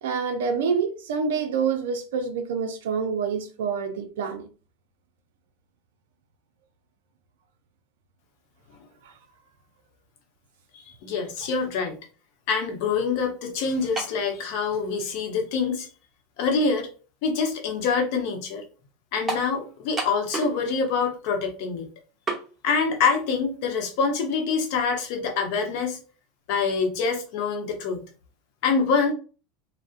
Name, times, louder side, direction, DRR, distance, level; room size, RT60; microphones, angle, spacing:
voice 1, 0.0-4.5 11.4-11.5, right 6 dB, 75° right, 0.3 m, -27 dB
voice 2, 10.7-12.0 12.5-15.9 16.4-16.9 17.2-18.6 19.1-21.9 22.6-26.0 26.5-28.1 28.6-29.1, left 5 dB, 65° left, 0.7 m, -25 dB
sound 1, 14.0-14.2 15.1-15.2 19.3-19.5 20.0-20.6 20.9-21.0 22.3-22.5, right 3 dB, 20° right, 0.9 m, -30 dB
2.5 x 2.0 x 2.4 m
hypercardioid pair, 95°, 0 cm